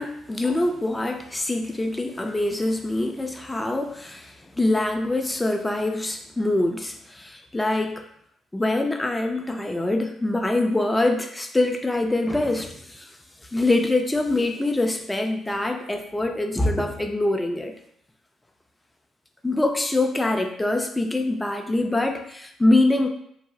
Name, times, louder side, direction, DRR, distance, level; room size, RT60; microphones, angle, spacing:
voice 1, 0.0-8.0 8.5-13.2 13.5-17.7 19.4-23.1, left 2 dB, 15° left, 5 dB, 0.4 m, -24 dB
2.4 x 2.0 x 3.6 m, 0.70 s
supercardioid pair, 60°, 0 cm